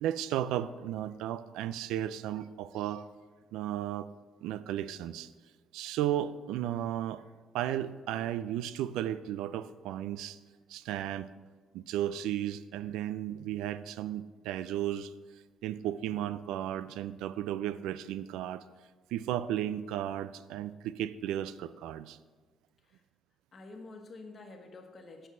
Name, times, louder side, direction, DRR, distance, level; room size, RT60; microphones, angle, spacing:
voice 1, 0.0-3.1 3.5-4.1 4.4-5.3 5.7-7.2 7.5-10.4 10.7-11.3 11.7-15.1 15.6-18.6 19.1-22.2, right 11 dB, 90° right, 15 dB, 0.3 m, -34 dB
voice 2, 23.5-25.3, left 3 dB, 40° left, 5 dB, 1.2 m, -48 dB
8.3 x 5.5 x 6.1 m, 1.4 s
cardioid pair, 100°, 0 cm